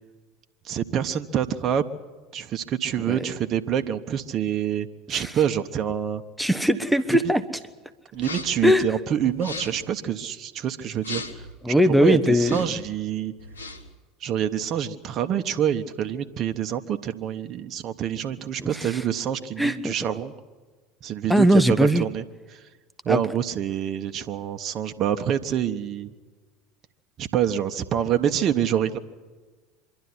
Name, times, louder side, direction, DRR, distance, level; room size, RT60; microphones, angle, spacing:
voice 1, 0.6-1.8 2.3-6.2 8.1-11.5 12.0-13.3 14.2-20.3 21.0-22.2 22.5-22.6 23.0-26.1 27.2-29.0, right 9 dB, 45° right, 7 dB, 1.1 m, -26 dB
voice 2, 6.4-7.4 8.6-8.9 11.6-12.6 18.7-19.0 19.6-19.9 21.3-22.0 23.1-23.2, equal, ahead, 10 dB, 1.0 m, -20 dB
sound 1, 8.1-8.7 9.3-9.9 11.0-11.5 12.3-12.9 13.4-13.9, left 3 dB, 90° left, 1.3 m, -37 dB
25.0 x 12.0 x 9.8 m, 1.3 s
hypercardioid pair, 80°, 0 cm